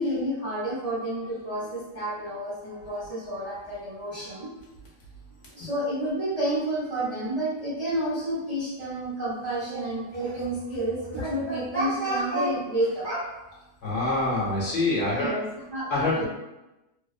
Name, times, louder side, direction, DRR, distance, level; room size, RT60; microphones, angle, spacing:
voice 1, 0.0-4.5 5.5-13.2 15.0-15.4 15.7-16.3, right 1 dB, 30° right, -11 dB, 0.8 m, -30 dB
voice 2, 13.8-15.3 15.9-16.3, left 2 dB, 60° left, -6 dB, 1.0 m, -25 dB
2.7 x 2.0 x 2.4 m, 1.0 s
omnidirectional pair, 1.4 m